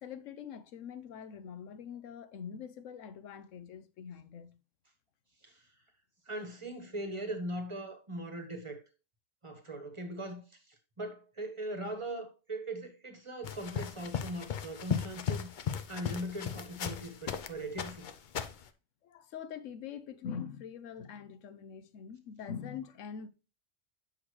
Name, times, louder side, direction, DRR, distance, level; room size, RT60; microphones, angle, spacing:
voice 1, 0.0-4.6 19.0-23.3, left 7 dB, 75° left, 1.0 m, -44 dB
voice 2, 6.3-8.8 9.4-15.5 15.9-18.1, right 1 dB, 25° right, 1.1 m, -40 dB
sound 1, 13.4-17.5 17.8-18.7, left 7 dB, 55° left, 0.5 m, -36 dB
8.1 x 5.8 x 3.1 m
omnidirectional pair, 1.4 m